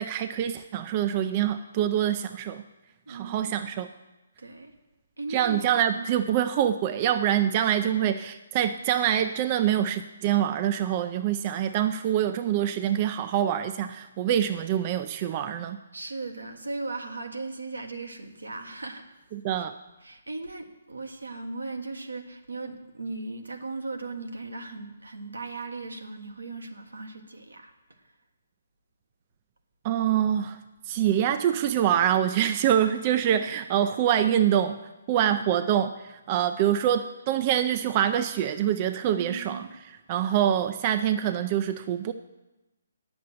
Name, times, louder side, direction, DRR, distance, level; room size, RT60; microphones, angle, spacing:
voice 1, 0.0-2.6 3.1-3.9 5.3-15.8 19.3-19.7 29.8-30.6 30.9-34.8 35.1-35.9 36.3-42.1, right 10 dB, 35° right, 9 dB, 0.4 m, -25 dB
voice 2, 3.1-3.5 4.4-4.7 5.2-5.7 5.9-6.2 7.8-8.1 15.9-19.0 19.6-19.7 20.0-27.7 35.2-35.5 39.1-39.7, right 3 dB, 85° right, 4 dB, 1.4 m, -37 dB
9.4 x 7.0 x 7.8 m, 1.0 s
figure-of-eight pair, 140°, 0 cm